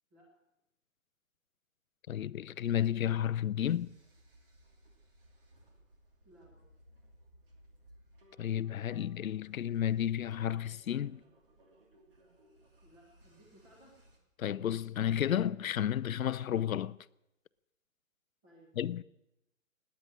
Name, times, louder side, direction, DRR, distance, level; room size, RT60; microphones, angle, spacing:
voice 1, 2.1-3.9 8.4-11.2 14.4-17.0 18.8-19.0, left 10 dB, 90° left, 0.7 m, -32 dB
sound 1, 3.7-14.2, right 1 dB, 40° right, 2.7 m, -63 dB
voice 2, 6.2-6.6 12.8-14.0 18.4-18.7, right 1 dB, 10° right, 1.5 m, -60 dB
18.5 x 9.8 x 7.4 m
hypercardioid pair, 180°, 40 cm